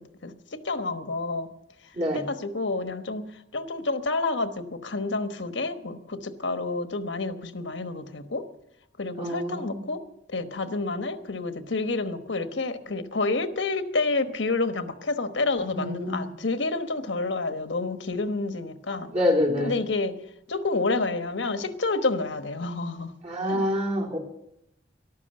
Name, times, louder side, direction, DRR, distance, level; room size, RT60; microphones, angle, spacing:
voice 1, 0.2-1.5 2.1-3.2 3.5-8.5 9.0-10.0 10.3-19.1 19.6-20.1 20.5-23.1 23.4-23.6, left 3 dB, 85° left, 9 dB, 1.2 m, -29 dB
voice 2, 1.9-2.2 9.2-9.8 15.7-16.3 19.1-19.8 23.2-24.2, left 1 dB, 40° right, -2 dB, 3.5 m, -26 dB
13.5 x 12.0 x 7.7 m, 0.78 s
head